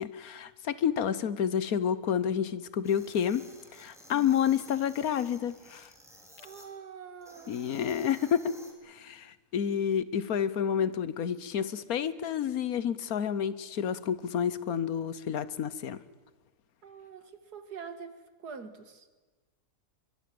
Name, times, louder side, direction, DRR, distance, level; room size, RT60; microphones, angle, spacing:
voice 1, 0.0-3.5 3.7-5.9 7.5-8.5 8.8-16.0, left 8 dB, 65° left, 16 dB, 1.4 m, -29 dB
sound 1, 2.8-6.7 7.2-8.7, equal, ahead, 3.6 m, -54 dB
voice 2, 6.4-7.6 16.8-19.1, right 6 dB, 75° right, 9 dB, 2.4 m, -45 dB
23.5 x 22.0 x 7.7 m, 1.2 s
omnidirectional pair, 1.7 m